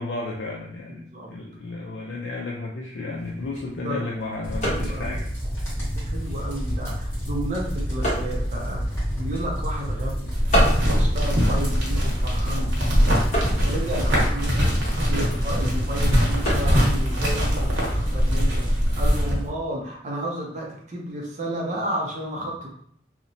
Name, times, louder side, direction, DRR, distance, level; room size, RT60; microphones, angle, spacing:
voice 1, 0.0-5.3, left 3 dB, 70° left, -2 dB, 0.4 m, -33 dB
sound 1, 3.1-18.6, equal, 40° left, 1.0 m, -34 dB
sound 2, 4.4-19.5, equal, 15° left, 1.3 m, -29 dB
voice 2, 4.6-5.2 5.8-8.8 9.2-10.3 10.9-13.0 13.4-22.7, right 1 dB, 40° right, -1 dB, 0.5 m, -32 dB
sound 3, 10.3-19.3, equal, 90° right, 0.9 m, -22 dB
2.8 x 2.1 x 2.6 m, 0.64 s
head